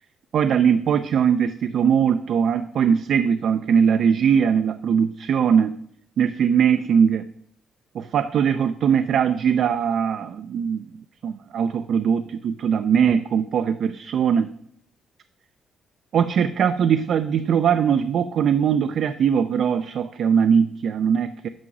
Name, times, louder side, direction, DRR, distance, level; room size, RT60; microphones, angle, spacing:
voice 1, 0.3-5.8 6.2-7.3 7.9-10.9 11.2-14.5 16.1-21.5, right 7 dB, 65° right, 9 dB, 0.3 m, -20 dB
6.0 x 4.8 x 6.0 m, 0.67 s
cardioid pair, 90°, 0 cm